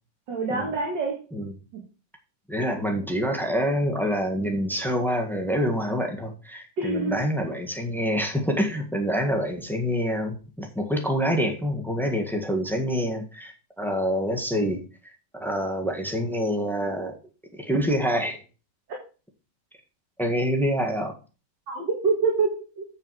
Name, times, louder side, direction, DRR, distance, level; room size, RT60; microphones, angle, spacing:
voice 1, 0.3-1.2 1.7-1.8 6.8-7.2 21.7-22.8, right 4 dB, 85° right, -1 dB, 2.5 m, -26 dB
voice 2, 2.5-14.8 15.4-17.2 17.5-18.4 20.2-21.1, equal, ahead, 2 dB, 1.4 m, -26 dB
7.8 x 7.0 x 4.8 m, 0.34 s
omnidirectional pair, 1.9 m